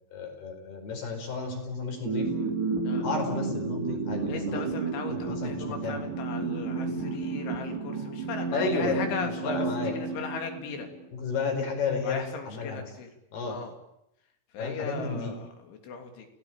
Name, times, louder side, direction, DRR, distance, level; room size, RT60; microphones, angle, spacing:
voice 1, 0.1-2.3 3.0-4.6 5.1-6.0 8.5-9.0 9.4-9.9 11.1-12.9 13.3-13.6 14.6-15.3, left 4 dB, 60° left, 4 dB, 6.8 m, -32 dB
sound 1, 2.1-11.1, right 4 dB, 70° right, 5.8 m, -32 dB
voice 2, 4.3-10.9 12.0-13.1 13.4-13.7 14.5-16.3, left 5 dB, 80° left, 5 dB, 5.5 m, -37 dB
30.0 x 18.0 x 8.9 m, 0.84 s
omnidirectional pair, 5.4 m